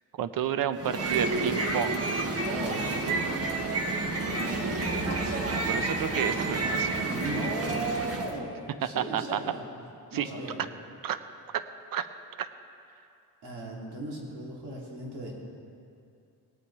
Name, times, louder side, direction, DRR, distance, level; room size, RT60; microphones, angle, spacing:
voice 1, 0.1-2.0 5.7-7.0 8.8-9.4 10.1-10.3 11.0-11.2 11.5-11.6 11.9-12.1 12.4-12.5, right 9 dB, 60° right, 11 dB, 0.7 m, -30 dB
sound 1, 0.7-8.4, right 3 dB, 40° right, 1.3 m, -29 dB
voice 2, 2.3-2.9 4.6-6.2 7.1-9.6 10.1-10.6 13.4-15.3, right 2 dB, 85° right, -3 dB, 2.9 m, -37 dB
19.0 x 9.0 x 4.7 m, 2.6 s
cardioid pair, 105°, 39 cm